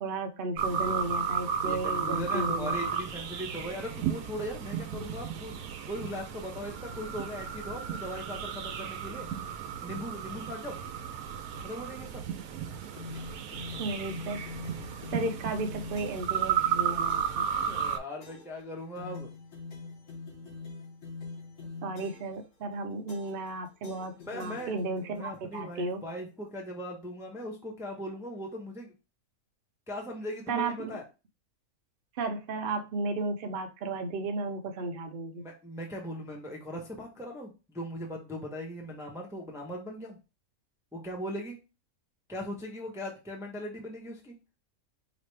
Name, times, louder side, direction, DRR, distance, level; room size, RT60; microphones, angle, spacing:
voice 1, 0.0-2.7 13.8-14.4 15.1-17.5 21.6-26.0 30.5-31.0 32.2-35.4, right 3 dB, 50° right, 5 dB, 0.7 m, -34 dB
sound 1, 0.6-18.0, right 8 dB, 90° right, 1.1 m, -34 dB
voice 2, 1.6-9.3 9.8-10.8 11.6-12.2 17.6-19.3 24.3-24.7 25.0-28.9 29.9-31.0 35.3-40.2 40.9-41.6 42.3-44.4, equal, 5° right, 0 dB, 0.6 m, -39 dB
sound 2, 13.0-16.4 17.1-17.5 18.2-18.6 19.0-22.4 23.1-23.5 23.8-25.2, left 4 dB, 65° left, 1.5 m, -44 dB
5.0 x 2.5 x 3.2 m, 0.29 s
omnidirectional pair, 1.5 m